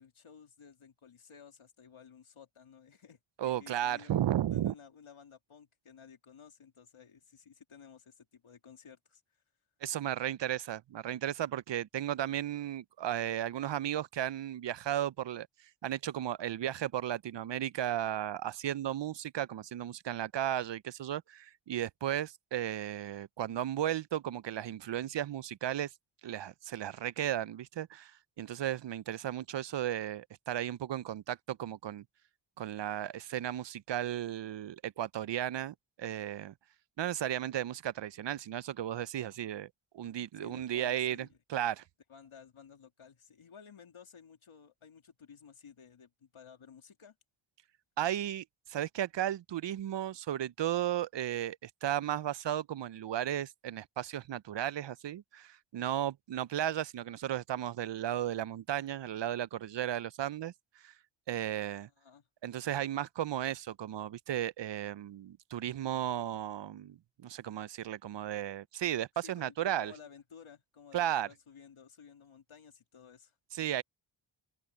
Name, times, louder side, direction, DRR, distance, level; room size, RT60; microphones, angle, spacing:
voice 1, 0.0-4.1 4.5-9.2 40.4-41.4 42.1-47.2 62.0-62.3 69.2-73.3, left 7 dB, 80° left, 2.9 m, -55 dB
voice 2, 3.4-4.7 9.8-15.5 15.8-25.9 26.2-32.0 32.6-36.5 37.0-41.8 48.0-60.9 61.3-61.9 62.4-69.9 70.9-71.3 73.5-73.8, right 11 dB, 60° right, 0.5 m, -35 dB
open air
cardioid pair, 60°, 49 cm